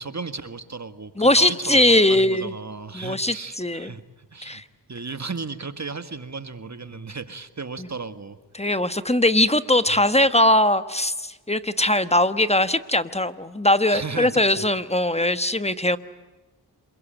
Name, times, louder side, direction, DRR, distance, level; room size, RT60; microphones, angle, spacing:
voice 1, 0.0-1.8 2.1-4.6 4.9-8.4 13.9-14.7 15.0-15.2, right 4 dB, 40° right, 10 dB, 1.7 m, -35 dB
voice 2, 1.2-2.5 2.9-3.9 4.4-4.6 8.5-16.0, left 1 dB, 15° left, 12 dB, 1.2 m, -20 dB
27.0 x 23.0 x 9.0 m, 1.2 s
cardioid pair, 55°, 41 cm